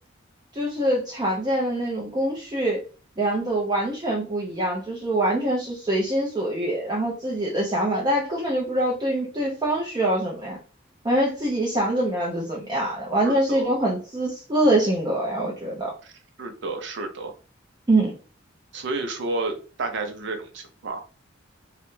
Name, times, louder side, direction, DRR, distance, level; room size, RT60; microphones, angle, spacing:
voice 1, 0.5-2.8 3.2-10.6 11.0-15.9 17.9-18.1, right 1 dB, 20° right, -3 dB, 0.5 m, -24 dB
voice 2, 13.2-13.8 16.0-16.1 16.4-17.3 18.7-21.0, right 3 dB, 65° right, 5 dB, 0.6 m, -31 dB
2.4 x 2.0 x 3.0 m, 0.36 s
head